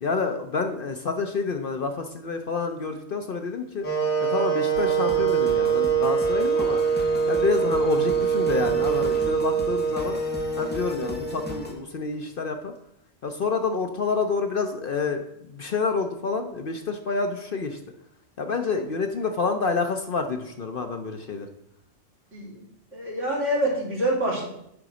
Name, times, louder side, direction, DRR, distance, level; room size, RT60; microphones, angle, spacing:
voice 1, 0.0-3.9 4.2-6.8 7.3-10.2 10.6-12.7 13.2-17.8 18.4-21.5, left 4 dB, 50° left, 6 dB, 0.8 m, -28 dB
Wind instrument woodwind instrument, 3.8-11.8, right 6 dB, 75° left, 1.8 m, -24 dB
sound 1, 4.7-11.7, equal, 10° left, 1.0 m, -39 dB
voice 2, 22.3-22.6 22.9-24.5, right 1 dB, 70° right, -4 dB, 3.1 m, -26 dB
9.8 x 4.0 x 6.2 m, 0.76 s
omnidirectional pair, 1.3 m